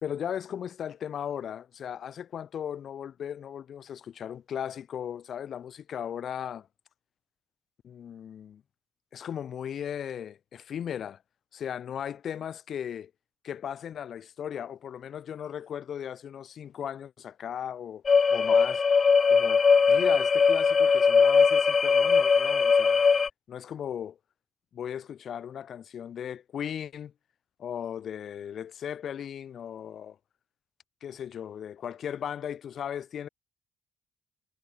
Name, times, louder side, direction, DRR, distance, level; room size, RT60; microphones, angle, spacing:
voice 1, 0.0-6.7 7.8-8.6 9.1-11.2 11.5-13.1 13.4-18.0 18.3-18.8 19.3-23.0 23.5-24.2 24.7-27.1 27.6-30.2 31.0-33.3, left 9 dB, 60° left, 2.6 m, -37 dB
sound 1, 18.1-23.3, left 5 dB, 40° left, 0.5 m, -21 dB
cardioid pair, 90°, 0 cm